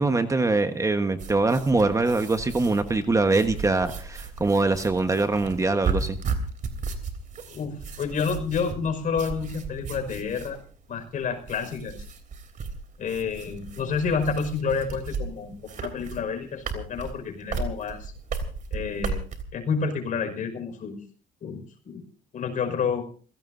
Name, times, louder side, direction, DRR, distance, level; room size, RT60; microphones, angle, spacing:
voice 1, 0.0-6.2, right 3 dB, 20° right, 8 dB, 1.2 m, -23 dB
sound 1, 1.2-19.4, right 5 dB, 50° right, 3.2 m, -35 dB
voice 2, 7.5-10.6 10.9-11.9 13.0-18.1 18.7-19.2 19.5-21.0 21.4-22.0 22.3-23.1, left 5 dB, 50° left, 6 dB, 5.3 m, -29 dB
28.0 x 17.0 x 2.7 m, 0.42 s
cardioid pair, 110°, 17 cm